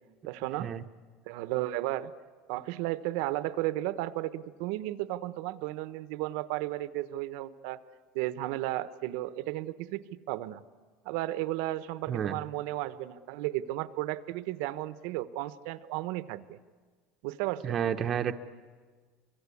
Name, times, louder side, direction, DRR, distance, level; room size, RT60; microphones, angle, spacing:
voice 1, 0.3-0.7 1.3-2.1 2.5-7.8 8.1-10.6 11.0-16.6 17.2-17.8, right 16 dB, 70° right, 14 dB, 0.9 m, -34 dB
voice 2, 12.1-12.4 17.6-18.4, right 8 dB, 30° right, 6 dB, 0.8 m, -30 dB
27.0 x 23.5 x 8.5 m, 1.5 s
cardioid pair, 150°, 0 cm